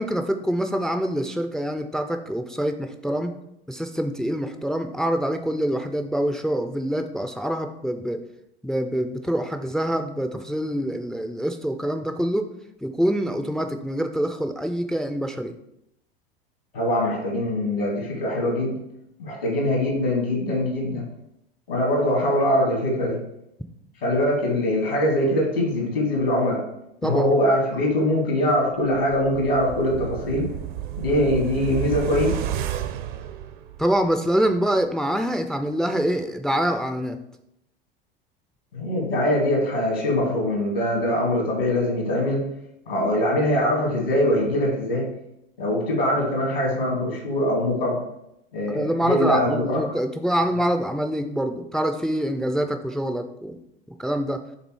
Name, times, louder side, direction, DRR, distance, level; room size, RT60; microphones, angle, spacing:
voice 1, 0.0-3.3 3.7-8.2 8.6-12.5 12.8-15.6 27.0-27.3 33.8-37.2 48.7-53.6 53.9-54.4, equal, ahead, 7 dB, 0.4 m, -25 dB
voice 2, 16.7-18.8 19.2-21.1 21.7-23.2 24.0-26.6 27.0-30.5 31.0-32.4 38.7-42.4 42.9-45.1 45.6-48.0 48.5-49.9, left 1 dB, 75° left, -1 dB, 2.4 m, -22 dB
sound 1, 28.9-34.1 34.5-34.6, right 11 dB, 55° right, 0.6 m, -31 dB
6.8 x 3.7 x 4.6 m, 0.80 s
figure-of-eight pair, 80°, 30 cm